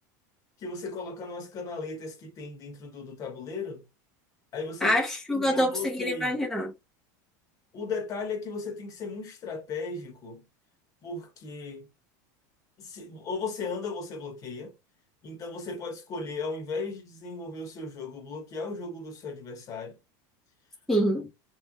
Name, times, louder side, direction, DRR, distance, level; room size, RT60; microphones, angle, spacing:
voice 1, 0.6-3.8 4.5-5.0 5.3-6.4 7.7-10.4 11.0-11.9 12.8-14.7 15.2-20.0, left 4 dB, 35° left, 1.3 m, -36 dB
voice 2, 4.8-6.7 20.9-21.3, equal, 5° left, 0.8 m, -26 dB
3.2 x 3.2 x 2.2 m
supercardioid pair, 140°, 10 cm